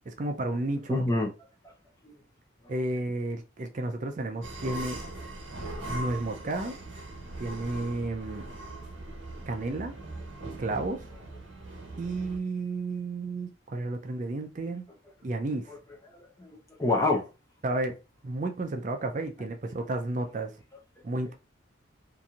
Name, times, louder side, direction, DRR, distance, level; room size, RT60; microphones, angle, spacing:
voice 1, 0.1-1.0 2.7-5.0 5.9-6.8 7.4-8.4 9.5-10.0 10.6-11.1 12.0-14.8 15.2-15.7 17.6-18.0 18.2-20.5 21.0-21.3, right 2 dB, 40° right, 0.4 m, -32 dB
voice 2, 0.9-1.3 2.0-2.1 2.6-2.7 16.1-17.2, left 2 dB, 15° left, 0.5 m, -27 dB
sound 1, 4.4-12.4, right 2 dB, 70° right, 1.1 m, -40 dB
2.9 x 2.6 x 2.3 m
head